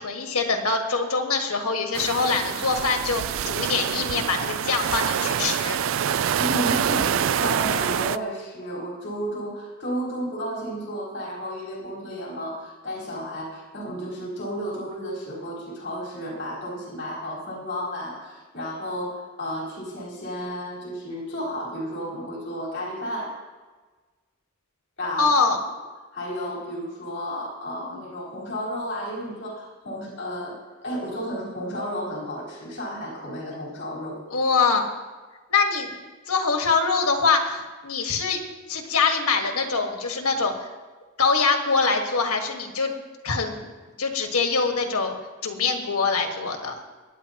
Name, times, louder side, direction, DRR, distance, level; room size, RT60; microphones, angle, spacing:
voice 1, 0.0-5.8 25.2-25.6 34.3-34.9 35.5-35.9 36.3-38.4 38.7-40.5 41.2-42.9 43.2-43.7 44.0-45.1 45.4-46.8, left 4 dB, 90° left, 3 dB, 1.6 m, -24 dB
sound 1, 1.9-8.2, right 9 dB, 65° right, 0.3 m, -26 dB
voice 2, 6.4-23.4 25.0-25.3 26.1-34.2, equal, 55° left, -6 dB, 4.3 m, -32 dB
24.0 x 9.5 x 2.9 m, 1.3 s
head